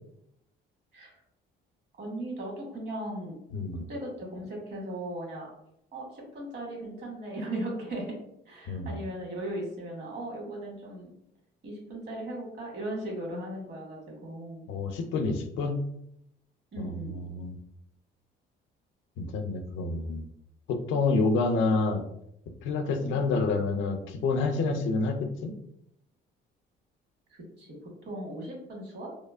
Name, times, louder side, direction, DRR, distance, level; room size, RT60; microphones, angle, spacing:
voice 1, 2.0-3.4 3.9-5.5 5.9-8.2 8.4-11.1 11.6-14.7 16.7-17.1 23.0-23.2 27.3-27.8 28.0-29.1, right 1 dB, 55° right, -1 dB, 1.3 m, -37 dB
voice 2, 3.5-3.9 8.7-9.0 14.7-15.8 16.8-17.6 19.2-20.2 20.7-22.0 22.6-25.5, left 3 dB, 70° left, 6 dB, 0.5 m, -28 dB
2.9 x 2.0 x 2.3 m, 0.76 s
supercardioid pair, 75°, 20 cm